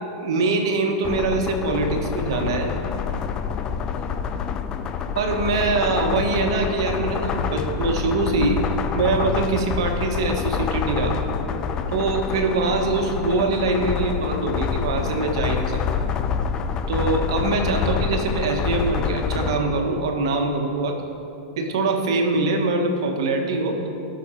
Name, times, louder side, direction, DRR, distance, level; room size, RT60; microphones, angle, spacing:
voice 1, 0.2-2.7 5.1-8.6 8.9-11.2 11.9-16.0 16.9-21.0 21.6-23.8, right 3 dB, 75° right, 3 dB, 1.5 m, -23 dB
sound 1, 1.0-19.6, left 6 dB, 30° left, 0.6 m, -27 dB
18.5 x 6.3 x 4.4 m, 2.8 s
supercardioid pair, 135°, 3 cm